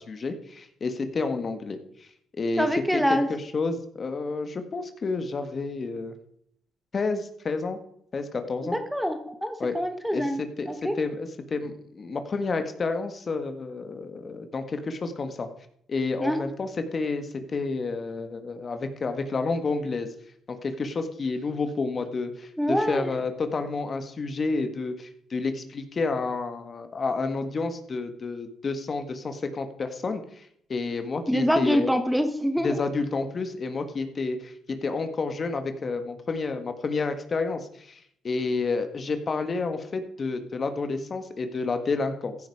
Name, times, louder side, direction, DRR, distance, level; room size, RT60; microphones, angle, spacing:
voice 1, 0.0-2.1 2.3-2.7 2.9-6.1 6.9-7.8 8.1-8.8 9.6-9.8 10.1-10.7 11.0-15.5 15.9-20.1 20.5-30.4 30.7-31.9 32.6-34.5 34.8-38.0 38.2-42.4, left 3 dB, 40° left, 8 dB, 1.9 m, -30 dB
voice 2, 2.6-3.3 8.6-10.9 16.2-16.4 22.6-23.1 31.3-32.8, equal, ahead, 8 dB, 1.4 m, -25 dB
15.5 x 10.5 x 4.9 m, 0.68 s
cardioid pair, 90°, 0 cm